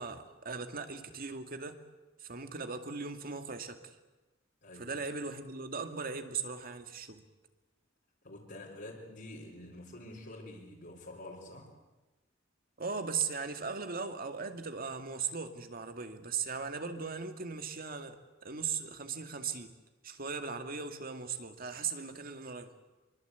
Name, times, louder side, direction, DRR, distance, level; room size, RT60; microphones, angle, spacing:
voice 1, 0.0-1.8 2.2-4.0 4.8-7.2 12.8-19.7 20.0-22.7, right 5 dB, 50° right, 7 dB, 2.2 m, -38 dB
voice 2, 8.2-11.7, left 1 dB, 60° left, -4 dB, 4.5 m, -47 dB
25.5 x 24.0 x 8.3 m, 1.1 s
head